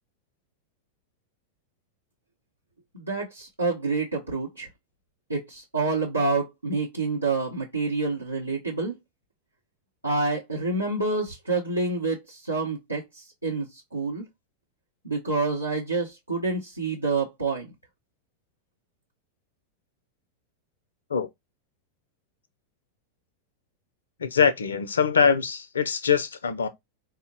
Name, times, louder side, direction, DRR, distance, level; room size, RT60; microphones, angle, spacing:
voice 1, 2.9-4.7 5.3-8.9 10.0-14.2 15.0-17.7, right 3 dB, 85° right, 0.7 m, -28 dB
voice 2, 24.2-26.7, left 6 dB, 70° left, 0.4 m, -23 dB
3.7 x 2.1 x 2.7 m
figure-of-eight pair, 90°, 0 cm